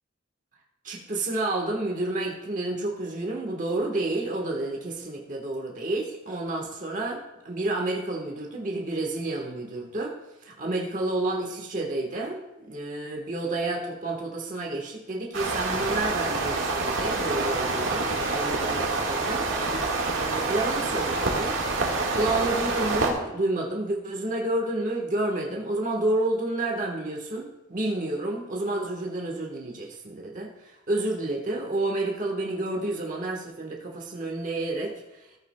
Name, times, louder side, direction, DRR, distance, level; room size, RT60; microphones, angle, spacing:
voice 1, 0.8-10.1 10.4-35.4, right 2 dB, 40° right, 0 dB, 1.3 m, -30 dB
sound 1, 15.3-23.1, right 3 dB, 75° right, 1.6 m, -27 dB
14.5 x 8.4 x 2.2 m, 0.93 s
head